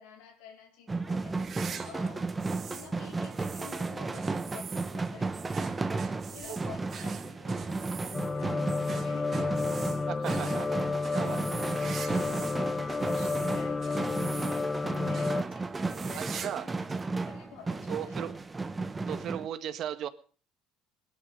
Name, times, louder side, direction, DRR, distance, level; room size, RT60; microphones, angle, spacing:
voice 1, 0.0-5.8 6.3-9.5 11.3-11.5 12.0-16.7 17.3-18.2, left 8 dB, 80° left, 4 dB, 4.3 m, -51 dB
sound 1, 0.9-19.5, right 3 dB, 20° right, 1.5 m, -34 dB
sound 2, 1.2-2.9 3.2-12.6 12.9-14.8 15.1-15.4 15.7-16.6 16.9-17.0 17.8-17.9 19.1-19.2, right 7 dB, 40° right, 2.1 m, -45 dB
sound 3, 8.1-15.4, left 3 dB, 20° left, 0.7 m, -31 dB
voice 2, 10.1-10.7 11.1-11.4 16.1-16.7 17.9-18.3 19.1-20.1, right 10 dB, 55° right, 11 dB, 1.7 m, -36 dB
18.5 x 11.5 x 6.6 m, 0.41 s
supercardioid pair, 95°, 0 cm